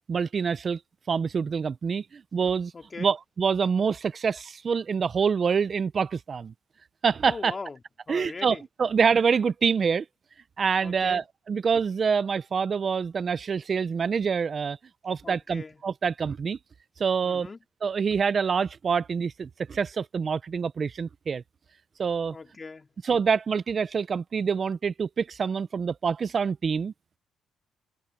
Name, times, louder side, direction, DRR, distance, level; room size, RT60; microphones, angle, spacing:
voice 1, 0.1-0.8 1.1-2.7 3.0-6.5 7.0-7.5 8.1-10.0 10.6-14.8 15.0-16.6 17.0-17.5 17.8-21.4 22.0-22.4 23.0-26.9, right 6 dB, 45° right, 0.5 m, -26 dB
voice 2, 2.7-3.1 7.3-7.8 8.1-8.6 10.8-11.2 15.2-15.8 17.2-17.6 22.3-22.9, left 4 dB, 30° left, 2.5 m, -40 dB
cardioid pair, 90°, 0 cm